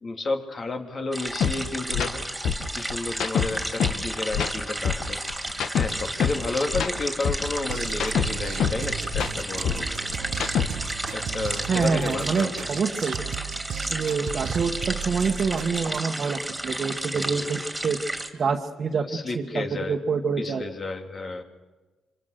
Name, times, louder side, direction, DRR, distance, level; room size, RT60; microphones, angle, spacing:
voice 1, 0.0-2.3 2.7-5.2 5.7-10.1 10.9-12.8 17.1-17.7 19.1-20.0 20.4-21.4, left 3 dB, 40° left, 5 dB, 2.7 m, -32 dB
sound 1, 1.1-18.3, right 1 dB, 10° right, 3.0 m, -33 dB
sound 2, 1.4-1.5 1.9-2.1 2.4-4.0 4.3-6.4 6.7-8.8 9.1-10.9, left 7 dB, 70° left, 1.5 m, -26 dB
sound 3, 7.5-16.0, right 8 dB, 65° right, 0.9 m, -35 dB
voice 2, 11.7-13.2 13.9-18.0 18.3-19.1 19.4-20.6, right 5 dB, 45° right, 0 dB, 1.6 m, -26 dB
26.5 x 25.0 x 6.6 m, 1.2 s
cardioid pair, 90°, 0 cm